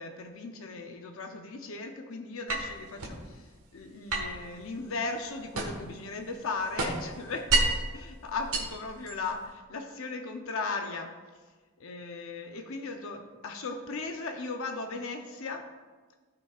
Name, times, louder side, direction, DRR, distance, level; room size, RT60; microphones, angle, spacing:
voice 1, 0.0-11.2 11.8-15.7, left 3 dB, 65° left, 5 dB, 0.7 m, -37 dB
sound 1, 2.5-3.2 4.1-6.0 6.3-7.9 8.4-9.4, right 2 dB, 80° right, 1.5 m, -30 dB
16.0 x 5.5 x 2.4 m, 1.4 s
head